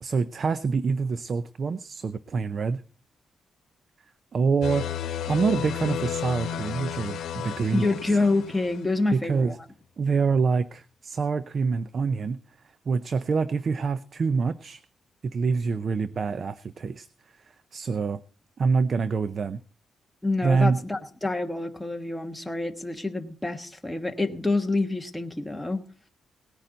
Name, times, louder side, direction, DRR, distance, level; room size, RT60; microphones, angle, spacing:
voice 1, 0.0-2.8 4.3-4.9 5.3-8.2 9.1-9.6 10.0-12.4 12.9-14.8 15.3-17.1 17.4-18.2 18.6-19.6 20.4-20.8, right 5 dB, 45° right, 15 dB, 0.5 m, -26 dB
sound 1, 4.6-9.0, left 9 dB, 85° left, 1.0 m, -33 dB
voice 2, 7.7-9.6 20.2-25.8, left 2 dB, 5° left, 4 dB, 1.3 m, -27 dB
18.5 x 10.0 x 3.9 m, 0.38 s
cardioid pair, 120°, 0 cm